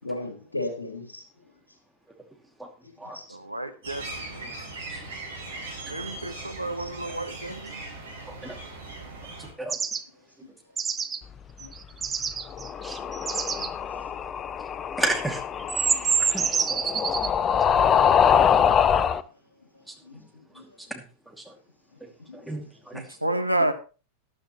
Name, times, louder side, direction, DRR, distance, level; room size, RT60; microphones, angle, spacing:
voice 1, 0.0-1.2 3.1-3.2 4.1-4.2 6.8-6.9 11.6-11.7 13.6-13.7 15.8-16.0 17.7-17.8 18.7-18.9 20.0-20.2 20.5-20.6 22.3-22.4, left 2 dB, 80° left, 3.1 m, -36 dB
voice 2, 3.3-4.5 5.9-7.7 22.9-23.7, right 1 dB, 85° right, 1.1 m, -30 dB
sound 1, 3.8-9.5, right 3 dB, 65° right, 4.6 m, -39 dB
sound 2, 9.7-10.0 10.8-11.2 11.6-13.7 15.1-15.2 15.6-17.3, right 6 dB, 20° right, 0.8 m, -27 dB
sound 3, 12.5-19.2, left 8 dB, 25° left, 0.6 m, -24 dB
voice 3, 15.0-15.4 16.3-17.3 18.6-18.7 19.9-20.0 20.9-21.0 21.4-21.5 22.3-23.0, right 2 dB, ahead, 2.5 m, -32 dB
13.5 x 11.5 x 3.1 m
figure-of-eight pair, 90°, 0 cm